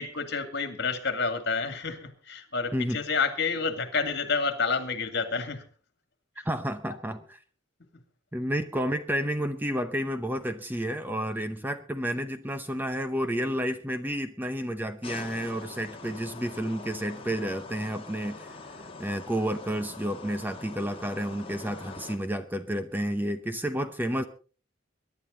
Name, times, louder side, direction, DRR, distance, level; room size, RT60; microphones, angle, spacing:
voice 1, 0.0-5.6 6.9-7.0, left 4 dB, 55° left, 8 dB, 2.4 m, -29 dB
voice 2, 6.4-7.4 8.3-18.7 19.0-24.2, equal, 10° right, 9 dB, 0.7 m, -31 dB
sound 1, 15.0-22.2, left 3 dB, 25° left, 1.7 m, -43 dB
23.0 x 11.0 x 3.9 m, 0.38 s
head